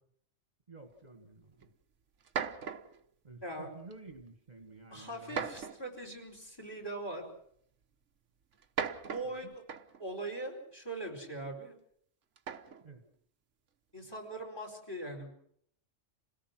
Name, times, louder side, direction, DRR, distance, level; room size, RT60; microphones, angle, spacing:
voice 1, 0.7-1.6 3.2-5.5 9.4-9.5 12.8-13.0, right 3 dB, 35° right, 5 dB, 1.7 m, -51 dB
sound 1, 1.6-1.7 2.2-3.0 3.9-4.2 5.3-6.0 7.1-7.2 8.5-10.1 12.4-12.9, right 6 dB, 75° right, 1.4 m, -38 dB
voice 2, 3.4-3.7 4.9-7.3 9.0-9.7 10.0-11.7 13.9-15.3, right 2 dB, 20° left, 3 dB, 4.7 m, -41 dB
27.5 x 18.0 x 6.1 m, 0.67 s
omnidirectional pair, 1.3 m